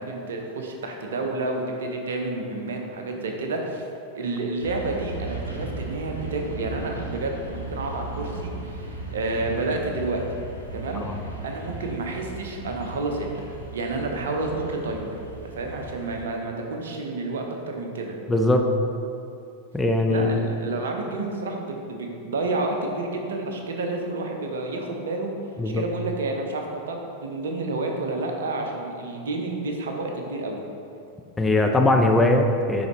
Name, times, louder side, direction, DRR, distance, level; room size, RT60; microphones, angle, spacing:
voice 1, 0.0-3.9 4.1-10.2 10.7-11.0 11.4-15.2 15.4-18.1 20.1-25.3 25.7-30.6, right 2 dB, 65° right, 2 dB, 0.8 m, -30 dB
sound 1, 4.6-16.2, right 2 dB, 80° right, 1.2 m, -36 dB
voice 2, 18.3-18.7 19.7-20.3 25.6-25.8 31.4-32.9, left 2 dB, 10° left, 3 dB, 0.5 m, -20 dB
10.0 x 3.9 x 3.1 m, 2.6 s
figure-of-eight pair, 90°, 0 cm